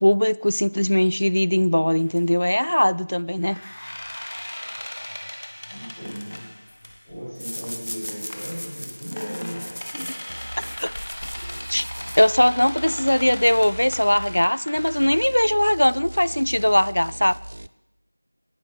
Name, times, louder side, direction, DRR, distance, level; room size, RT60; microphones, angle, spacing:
voice 1, 0.0-3.6 9.9-10.1 10.6-10.9 11.7-11.8 12.2-17.3, left 1 dB, 70° left, 19 dB, 0.3 m, -20 dB
sound 1, 2.0-2.2 3.4-7.2 8.1-15.0, left 1 dB, 45° left, 1.2 m, -38 dB
voice 2, 5.7-6.4 7.0-10.1 10.4-10.6 11.4-11.5, equal, ahead, -28 dB, 4.5 m, -36 dB
sound 2, 7.3-12.7, equal, 85° left, 1.5 m, -38 dB
sound 3, 10.3-10.8 11.2-14.5 14.8-17.7, right 1 dB, 40° right, 0.3 m, -39 dB
19.0 x 7.8 x 3.5 m, 0.86 s
figure-of-eight pair, 175°, 0 cm